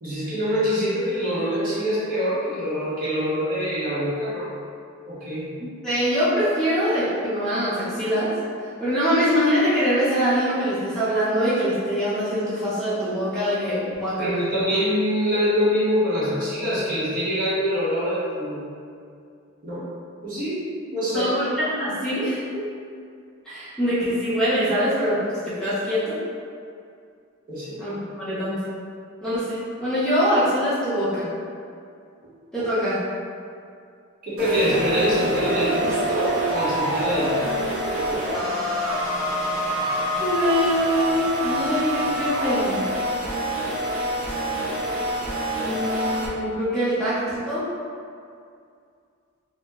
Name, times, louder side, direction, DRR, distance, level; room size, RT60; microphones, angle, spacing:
voice 1, 0.0-4.5 5.0-5.5 14.2-18.7 19.6-19.9 20.2-21.3 27.5-27.8 32.2-32.3 34.2-37.6, equal, 40° right, -9 dB, 0.8 m, -25 dB
voice 2, 5.8-8.3 8.8-14.4 21.1-22.6 23.5-25.2 25.4-26.2 27.8-28.6 29.2-31.3 32.5-33.0 40.2-42.8 45.6-47.6, equal, 5° left, -13 dB, 0.6 m, -23 dB
sound 1, 34.4-46.3, equal, 80° right, 0.7 m, -26 dB
2.7 x 2.1 x 3.4 m, 2.3 s
head